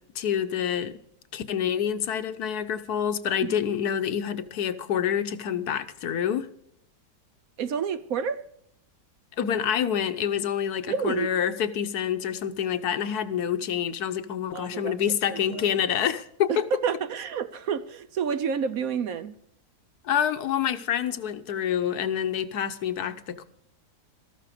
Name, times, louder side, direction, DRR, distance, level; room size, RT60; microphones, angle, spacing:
voice 1, 0.1-1.0 1.3-6.5 9.4-16.7 20.0-23.4, left 9 dB, 70° left, 1.3 m, -27 dB
voice 2, 7.6-8.4 10.9-11.3 14.5-15.0 15.3-15.7 16.5-19.4, right 7 dB, 65° right, 1.1 m, -29 dB
13.5 x 13.5 x 5.0 m
omnidirectional pair, 1.8 m